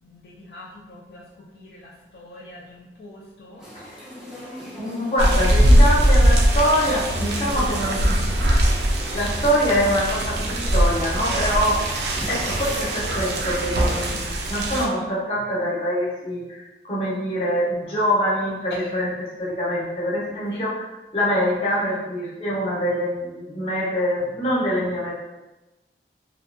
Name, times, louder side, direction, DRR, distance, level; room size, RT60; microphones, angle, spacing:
voice 1, 0.0-3.7 18.7-18.9 20.5-20.6, left 1 dB, 65° left, -5 dB, 0.4 m, -43 dB
sound 1, 3.6-14.1, equal, 5° right, 0.4 m, -39 dB
voice 2, 4.7-8.2 9.1-11.9 12.3-14.2 14.5-20.9 21.1-25.1, equal, 35° left, -6 dB, 0.7 m, -24 dB
sound 2, 5.2-14.9, right 1 dB, 70° right, 0.4 m, -21 dB
2.6 x 2.3 x 2.5 m, 1.1 s
head